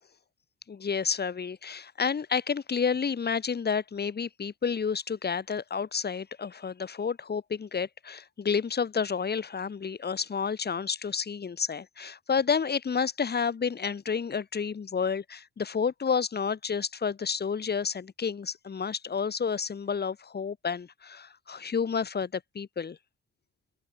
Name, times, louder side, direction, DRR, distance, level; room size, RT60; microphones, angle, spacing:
voice 1, 0.7-23.0, left 6 dB, 35° left, 1.5 m, -30 dB
open air
cardioid pair, 90°, 30 cm